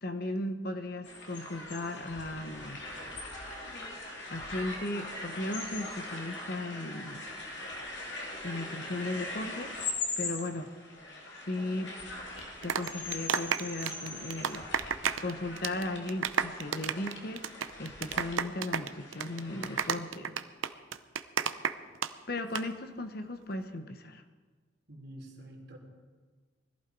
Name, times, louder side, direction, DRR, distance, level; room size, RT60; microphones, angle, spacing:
voice 1, 0.0-2.8 4.3-7.2 8.4-9.7 10.2-10.7 11.3-11.9 12.6-14.7 15.2-17.5 17.8-20.4 22.3-24.2, left 2 dB, 50° left, 7 dB, 1.0 m, -36 dB
sound 1, 1.0-19.9, left 2 dB, 65° left, 2.8 m, -41 dB
sound 2, 12.4-15.3 15.6-15.8 16.1-22.1 22.4-22.6, right 7 dB, 85° right, 0.7 m, -31 dB
voice 2, 24.9-25.8, right 1 dB, 55° right, 0 dB, 3.3 m, -47 dB
20.5 x 14.5 x 4.7 m, 1.4 s
head